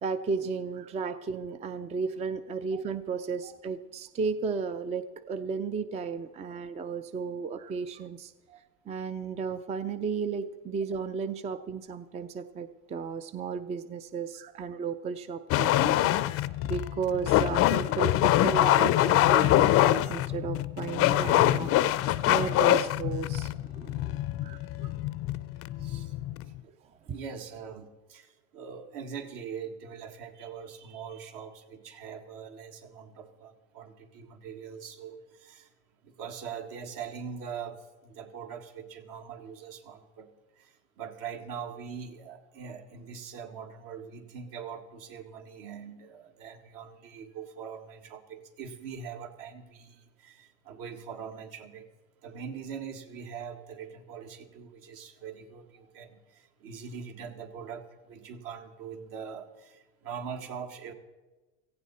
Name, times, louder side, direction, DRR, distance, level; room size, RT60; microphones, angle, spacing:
voice 1, 0.0-8.3 8.9-21.7 22.3-24.9, right 5 dB, 20° right, 12 dB, 0.4 m, -34 dB
sound 1, 15.5-26.6, left 14 dB, 40° left, 0.5 m, -24 dB
voice 2, 25.8-26.1 26.6-26.7 27.1-35.7 36.0-40.3 40.6-51.9 52.2-60.9, right 7 dB, 65° right, 5 dB, 1.9 m, -42 dB
17.5 x 15.0 x 4.2 m, 1.1 s
supercardioid pair, 135°, 35 cm